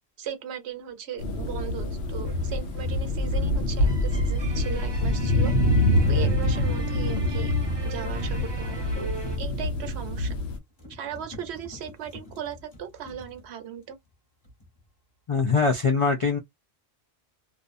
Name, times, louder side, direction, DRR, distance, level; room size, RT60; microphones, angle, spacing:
voice 1, 0.2-5.5 6.1-7.5 7.8-9.1 9.4-10.3 10.9-14.0, right 8 dB, 75° right, 0.9 m, -37 dB
sound 1, 1.2-10.6, left 1 dB, 85° left, 1.0 m, -25 dB
sound 2, 2.2-9.4, equal, 25° right, 0.7 m, -37 dB
sound 3, 5.3-5.6 5.9-14.1 14.4-14.9, left 2 dB, 25° left, 1.1 m, -48 dB
voice 2, 15.3-16.4, left 4 dB, 55° left, 0.3 m, -22 dB
2.5 x 2.2 x 2.5 m
omnidirectional pair, 1.1 m